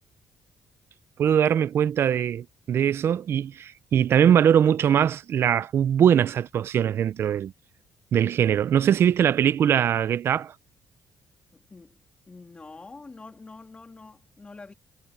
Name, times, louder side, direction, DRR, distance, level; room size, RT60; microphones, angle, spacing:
voice 1, 1.2-7.5 8.1-10.5, right 9 dB, 55° right, 0.6 m, -21 dB
voice 2, 11.5-12.0 12.3-14.7, left 3 dB, 20° left, 2.8 m, -45 dB
cardioid pair, 125°, 5 cm